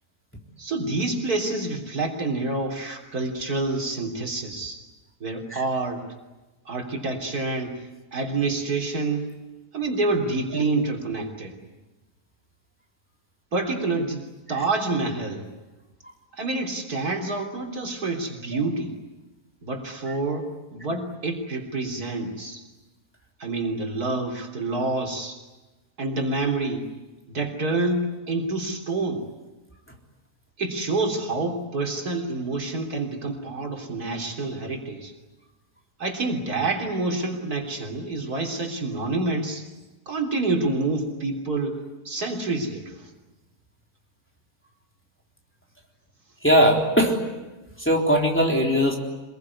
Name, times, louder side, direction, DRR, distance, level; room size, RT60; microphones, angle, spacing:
voice 1, 0.6-4.8 5.2-6.1 6.7-7.8 8.1-9.3 9.7-11.5 13.5-14.2 14.5-15.4 16.4-18.9 19.6-22.6 23.4-25.4 26.0-26.8 27.3-29.3 30.6-35.1 36.0-39.7 40.1-41.8 42.1-43.0, right 3 dB, 75° right, 2 dB, 3.9 m, -27 dB
voice 2, 46.4-47.2 47.8-49.0, equal, 5° left, 0 dB, 3.7 m, -20 dB
26.5 x 21.5 x 9.8 m, 1.1 s
omnidirectional pair, 1.6 m